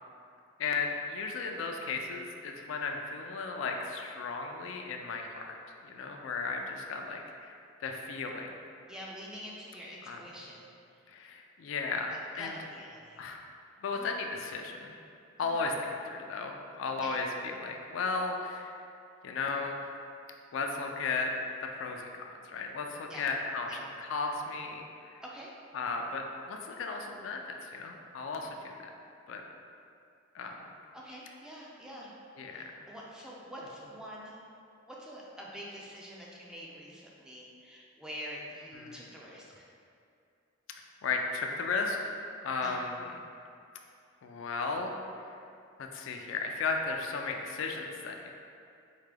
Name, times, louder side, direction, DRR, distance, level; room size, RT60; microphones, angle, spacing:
voice 1, 0.6-5.5 5.8-7.6 7.8-8.5 10.1-10.2 11.1-12.1 12.4-12.6 13.2-13.4 13.8-14.9 15.4-18.7 19.2-19.8 20.5-21.3 21.6-24.9 25.7-27.4 27.7-28.7 29.3-29.4 30.3-30.6 32.4-32.6 38.8-38.9 41.0-42.1 42.4-43.0 44.2-44.9 45.8-48.3, left 4 dB, 70° left, 3 dB, 0.3 m, -35 dB
voice 2, 8.9-10.7 12.1-13.2 13.9-14.1 15.4-15.6 17.0-17.2 23.1-23.3 23.7-23.9 25.2-25.5 30.9-34.4 34.9-39.6 42.6-42.8, equal, 5° right, -4 dB, 0.4 m, -46 dB
4.6 x 2.2 x 3.3 m, 2.5 s
head